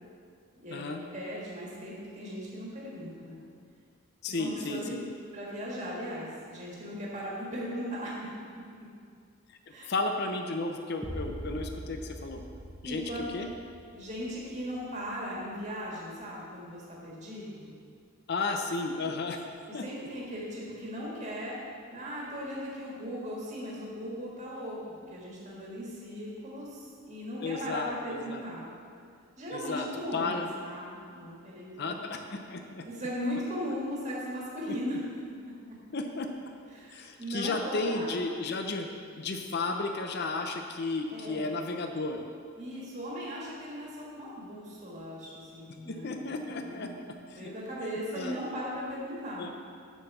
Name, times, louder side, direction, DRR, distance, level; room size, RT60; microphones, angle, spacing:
voice 1, 1.1-3.4 4.2-5.0 5.3-8.3 9.7-9.9 12.8-13.2 13.9-17.7 19.7-21.5 21.9-24.8 25.1-28.7 29.4-32.1 32.8-35.0 35.7-35.8 36.7-38.2 41.1-41.5 42.6-46.9 47.3-49.4, equal, 30° right, -5 dB, 1.7 m, -38 dB
voice 2, 4.2-5.0 9.9-12.4 12.8-13.0 13.3-13.5 18.3-19.4 19.7-19.8 27.4-28.4 29.5-29.9 30.1-30.5 31.8-32.8 35.9-36.3 36.9-38.9 39.2-42.2 45.9-47.5 48.1-48.4 49.4-49.5, left 3 dB, 50° left, 4 dB, 0.6 m, -33 dB
sound 1, 11.0-15.0, equal, 5° right, 0.4 m, -43 dB
6.2 x 5.9 x 6.7 m, 2.3 s
head